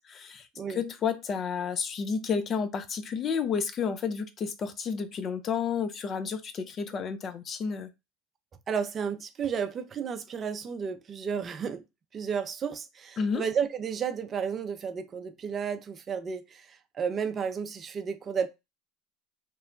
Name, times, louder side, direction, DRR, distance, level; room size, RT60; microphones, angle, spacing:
voice 1, 0.1-7.9 13.2-13.4, left 6 dB, 40° left, 0.4 m, -31 dB
voice 2, 8.7-11.8 12.1-18.5, right 6 dB, 35° right, 0.4 m, -32 dB
2.9 x 2.1 x 2.4 m
hypercardioid pair, 80°, 0 cm